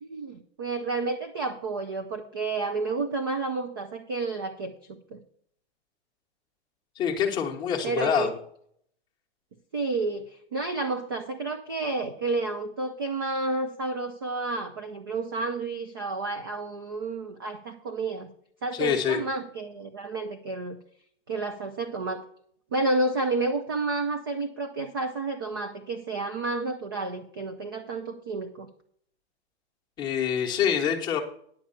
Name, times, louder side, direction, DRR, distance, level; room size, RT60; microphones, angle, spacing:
voice 1, 0.0-5.2 7.8-8.3 9.7-18.3 18.6-20.8 21.3-22.2 22.7-28.7, right 3 dB, 25° right, 7 dB, 0.3 m, -30 dB
voice 2, 7.0-8.3 18.7-19.2 30.0-31.2, left 8 dB, 15° left, 0 dB, 1.0 m, -26 dB
10.0 x 7.2 x 5.7 m, 0.65 s
hypercardioid pair, 165°, 33 cm